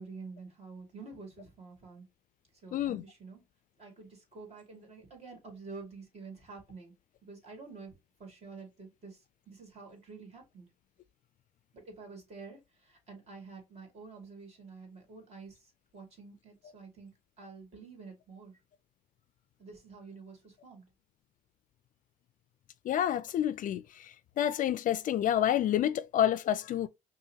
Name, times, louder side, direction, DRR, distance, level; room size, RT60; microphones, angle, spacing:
voice 1, 0.0-2.1 2.6-3.4 3.8-6.9 7.2-10.7 11.7-17.1 17.4-18.6 19.6-20.9, right 4 dB, 40° right, 2.3 m, -49 dB
voice 2, 2.7-3.0 22.9-23.8 24.4-26.9, left 11 dB, 50° left, 0.4 m, -28 dB
5.5 x 2.5 x 2.8 m
cardioid pair, 110°, 17 cm